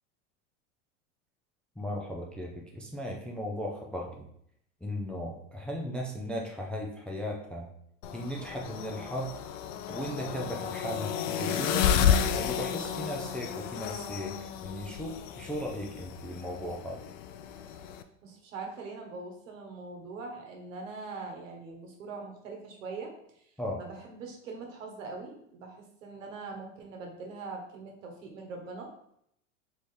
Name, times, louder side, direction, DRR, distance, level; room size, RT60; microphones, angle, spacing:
voice 1, 1.8-4.2 4.8-7.7 8.1-9.3 9.9-14.3 14.6-17.0 23.6-23.8, equal, 5° left, 0 dB, 0.3 m, -36 dB
sound 1, 8.0-18.0, left 8 dB, 75° left, 0.5 m, -32 dB
voice 2, 18.2-28.9, right 3 dB, 85° right, 2 dB, 1.3 m, -42 dB
3.5 x 3.2 x 4.2 m, 0.72 s
supercardioid pair, 120°, 38 cm